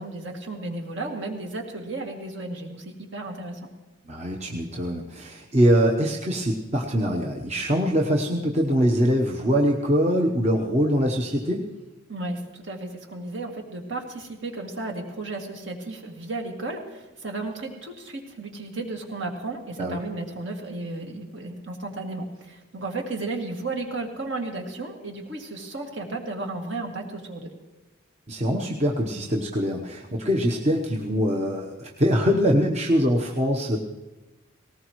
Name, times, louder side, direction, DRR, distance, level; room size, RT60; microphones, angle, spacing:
voice 1, 0.0-3.6 12.1-27.5, right 2 dB, 60° right, 1 dB, 2.2 m, -34 dB
voice 2, 4.0-11.7 19.8-20.0 28.3-33.8, equal, 30° right, 0 dB, 1.0 m, -23 dB
18.5 x 18.5 x 3.1 m, 1.1 s
head